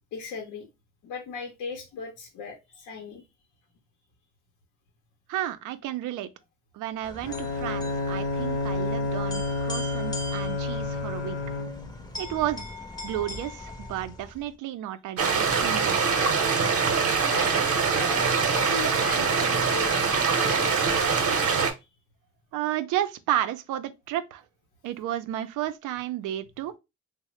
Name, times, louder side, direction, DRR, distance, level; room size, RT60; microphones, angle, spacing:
voice 1, 0.1-0.7 1.0-3.2 17.1-20.0 20.4-21.4, left 5 dB, 85° left, 0.7 m, -38 dB
voice 2, 5.3-6.3 6.7-11.4 12.2-12.7 13.0-16.4 22.5-24.4 24.8-26.8, right 12 dB, 85° right, 0.5 m, -32 dB
sound 1, 7.0-14.5, left 1 dB, 15° left, 0.6 m, -40 dB
Bowed string instrument, 7.2-12.1, left 3 dB, 50° left, 0.7 m, -30 dB
sound 2, 15.2-21.7, right 5 dB, 50° right, 0.8 m, -23 dB
3.0 x 2.1 x 2.9 m
cardioid pair, 90°, 30 cm